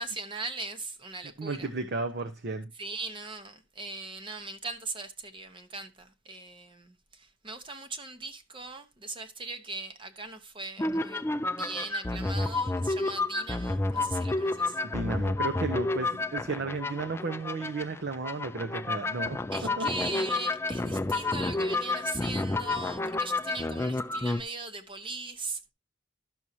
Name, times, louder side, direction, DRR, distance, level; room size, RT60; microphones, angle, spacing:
voice 1, 0.0-1.7 2.8-14.8 19.5-25.7, right 3 dB, 25° right, 0.9 m, -39 dB
voice 2, 1.4-2.7 14.8-19.4 19.8-19.9, right 3 dB, 60° right, 0.8 m, -33 dB
sound 1, 10.8-24.4, left 2 dB, 15° left, 0.4 m, -30 dB
12.5 x 6.3 x 2.7 m
head